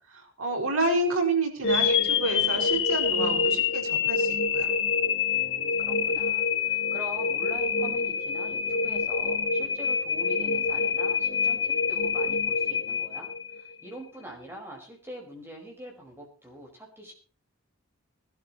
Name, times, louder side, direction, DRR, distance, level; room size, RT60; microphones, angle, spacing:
voice 1, 0.1-4.7, right 2 dB, 75° right, 2 dB, 5.7 m, -29 dB
sound 1, 1.6-13.7, left 6 dB, 60° left, 1.9 m, -26 dB
voice 2, 5.3-13.3 13.5-17.1, equal, 10° right, 1 dB, 5.0 m, -44 dB
20.5 x 13.0 x 3.1 m, 0.38 s
head